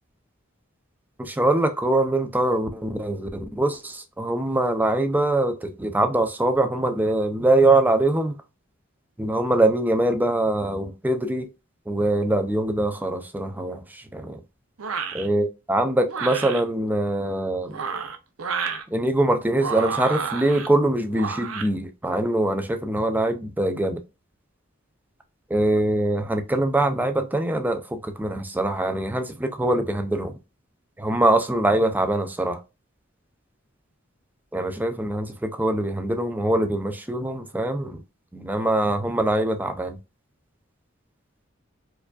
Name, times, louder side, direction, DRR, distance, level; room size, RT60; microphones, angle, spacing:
voice 1, 1.2-3.3 3.6-8.3 9.2-11.5 11.9-14.4 15.1-17.8 18.9-24.0 25.5-30.3 31.0-32.6 34.5-38.0 38.3-40.0, right 1 dB, 10° right, 0.4 m, -23 dB
sound 1, 14.8-15.3 16.1-16.6 17.6-18.8 19.5-20.7 21.1-21.7, right 6 dB, 90° right, 0.6 m, -30 dB
4.6 x 2.5 x 2.3 m
head